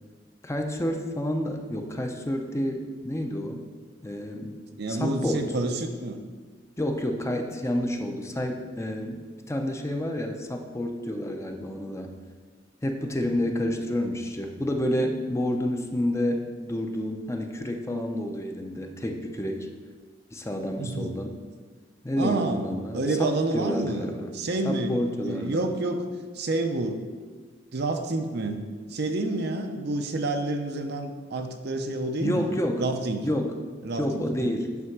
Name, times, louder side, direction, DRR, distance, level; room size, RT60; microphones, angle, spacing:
voice 1, 0.4-3.6 4.0-4.5 4.9-5.5 6.8-12.1 12.8-19.7 20.3-21.4 22.0-24.3 24.6-25.6 32.2-32.8 33.2-33.6 34.0-34.7, left 1 dB, 15° left, 3 dB, 0.6 m, -29 dB
voice 2, 4.8-6.2 20.8-21.1 22.2-22.7 22.9-24.1 24.3-24.9 25.3-26.1 26.3-27.0 27.7-28.6 28.9-33.3 33.8-34.5, right 2 dB, 60° right, 6 dB, 0.7 m, -29 dB
9.4 x 3.4 x 5.9 m, 1.5 s
head